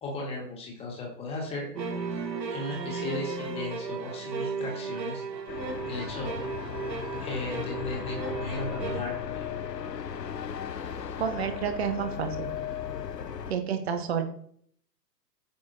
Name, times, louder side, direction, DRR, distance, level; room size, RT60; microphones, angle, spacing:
voice 1, 0.0-1.7 2.5-5.2 5.8-6.3 7.2-9.5, left 2 dB, 10° left, -1 dB, 1.6 m, -36 dB
sound 1, 1.8-9.0, right 4 dB, 80° right, 1.1 m, -35 dB
sound 2, 5.5-13.5, left 8 dB, 75° left, 0.8 m, -36 dB
voice 2, 11.2-12.5 13.5-14.2, right 7 dB, 40° right, 7 dB, 0.9 m, -30 dB
8.6 x 5.8 x 2.6 m, 0.63 s
figure-of-eight pair, 125°, 50 cm